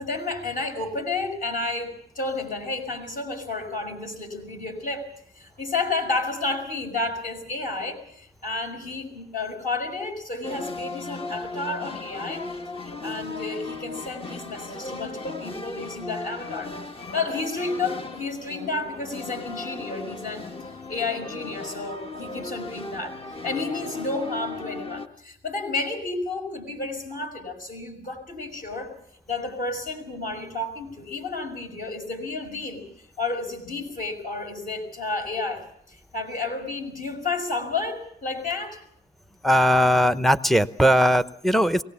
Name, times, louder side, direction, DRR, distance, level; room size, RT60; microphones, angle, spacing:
voice 1, 0.0-5.1 5.3-12.4 13.0-16.7 17.1-20.5 20.9-29.0 29.3-32.8 33.2-38.8, left 3 dB, 45° left, 3 dB, 5.9 m, -31 dB
sound 1, 10.4-25.1, left 3 dB, 25° left, 1.5 m, -36 dB
voice 2, 39.4-41.8, equal, ahead, 12 dB, 0.9 m, -19 dB
23.0 x 18.5 x 7.1 m, 0.68 s
cardioid pair, 90°, 20 cm